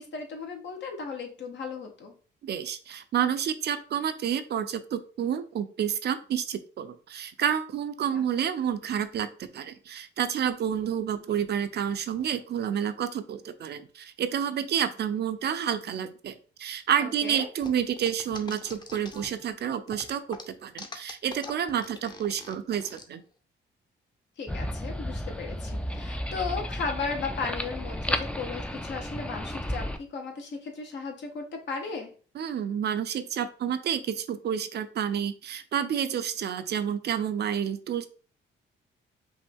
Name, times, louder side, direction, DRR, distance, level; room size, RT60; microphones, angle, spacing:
voice 1, 0.0-2.1 8.1-8.2 17.0-17.5 24.4-32.1, left 4 dB, 65° left, 3 dB, 1.3 m, -36 dB
voice 2, 2.4-23.2 32.3-38.1, right 9 dB, 55° right, 10 dB, 0.6 m, -29 dB
sound 1, 17.6-19.5 19.9-23.0, left 2 dB, 20° left, 0.8 m, -43 dB
sound 2, 24.5-30.0, equal, 5° left, 0.5 m, -33 dB
5.3 x 2.5 x 3.5 m, 0.39 s
cardioid pair, 90°, 20 cm